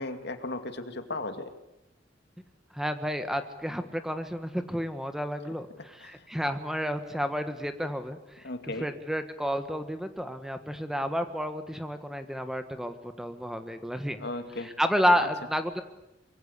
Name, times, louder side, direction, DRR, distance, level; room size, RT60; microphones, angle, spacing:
voice 1, 0.0-1.5 6.0-6.3 8.4-8.9 14.2-14.7 15.2-15.3, left 2 dB, 60° left, 8 dB, 2.4 m, -36 dB
voice 2, 2.7-14.2 14.6-15.8, equal, 5° right, 8 dB, 1.4 m, -31 dB
24.5 x 23.5 x 8.4 m, 0.90 s
head